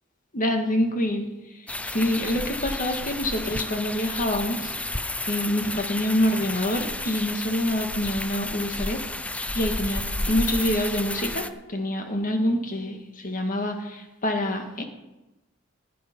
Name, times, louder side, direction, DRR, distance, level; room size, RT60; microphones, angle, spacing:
voice 1, 0.3-1.3 1.8-4.7 5.3-9.0 9.5-11.4 11.7-14.8, left 1 dB, 40° left, 4 dB, 1.8 m, -26 dB
sound 1, 1.7-11.5, left 2 dB, 5° left, 0.5 m, -32 dB
15.5 x 8.6 x 5.5 m, 1.0 s
head